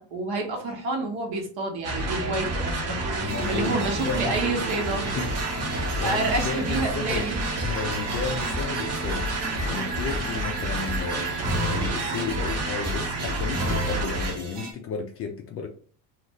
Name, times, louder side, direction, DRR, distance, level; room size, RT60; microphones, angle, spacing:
voice 1, 0.0-5.0 6.0-7.4, right 3 dB, 60° right, 2 dB, 1.1 m, -29 dB
sound 1, 1.8-14.3, right 2 dB, 35° right, 0.8 m, -29 dB
voice 2, 3.2-4.3 5.0-7.3 7.6-11.3 11.6-15.7, left 5 dB, 35° left, 3 dB, 0.4 m, -33 dB
sound 2, 3.3-14.7, right 1 dB, 85° right, 1.3 m, -34 dB
2.6 x 2.5 x 3.0 m, 0.44 s
cardioid pair, 120°, 44 cm